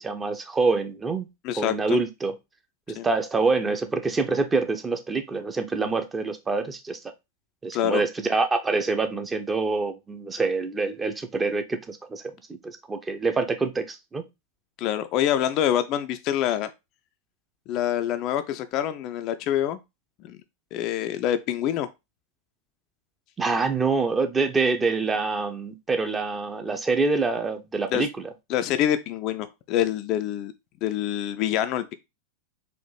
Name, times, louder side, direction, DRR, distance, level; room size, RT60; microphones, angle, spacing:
voice 1, 0.0-1.3 1.6-2.3 2.9-7.0 7.6-12.2 12.6-14.2 23.4-28.1, right 3 dB, 15° right, 0.5 m, -26 dB
voice 2, 1.4-2.0 3.0-3.1 7.7-8.0 14.8-16.7 17.7-19.8 20.2-20.4 20.7-21.9 27.9-28.0 28.5-30.5 30.8-31.9, left 11 dB, 40° left, 0.3 m, -26 dB
4.1 x 2.5 x 3.2 m
figure-of-eight pair, 90°, 0 cm